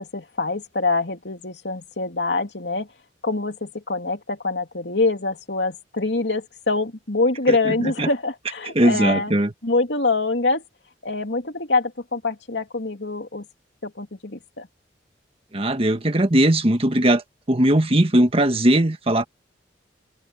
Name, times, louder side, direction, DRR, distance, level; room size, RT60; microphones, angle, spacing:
voice 1, 0.0-2.9 3.2-9.3 9.6-10.6 11.0-13.4 13.8-14.7, left 3 dB, 70° left, 3.1 m, -25 dB
voice 2, 7.5-8.1 8.7-9.5 15.5-19.2, right 1 dB, 30° right, 1.5 m, -19 dB
head